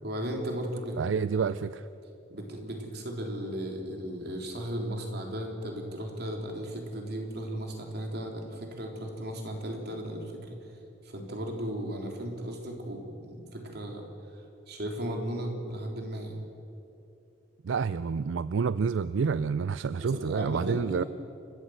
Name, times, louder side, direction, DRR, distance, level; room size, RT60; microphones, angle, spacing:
voice 1, 0.0-1.0 1.3-1.6 2.3-10.6 11.0-14.0 14.3-16.4 20.0-21.1, equal, 60° right, 1 dB, 3.4 m, -36 dB
voice 2, 1.0-1.8 17.6-21.0, right 5 dB, 80° right, 15 dB, 0.4 m, -28 dB
29.0 x 13.0 x 7.9 m, 2.8 s
head